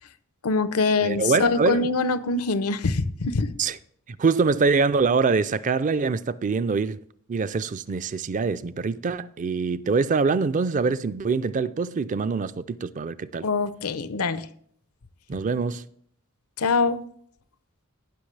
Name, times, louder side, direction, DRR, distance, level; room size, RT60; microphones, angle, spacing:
voice 1, 0.4-3.6 13.4-14.5 16.6-17.0, left 3 dB, 85° left, 0.7 m, -24 dB
voice 2, 1.0-1.9 3.6-3.8 4.1-7.0 7.3-13.4 15.3-15.8, right 4 dB, 35° right, 0.4 m, -24 dB
17.0 x 6.0 x 3.3 m
head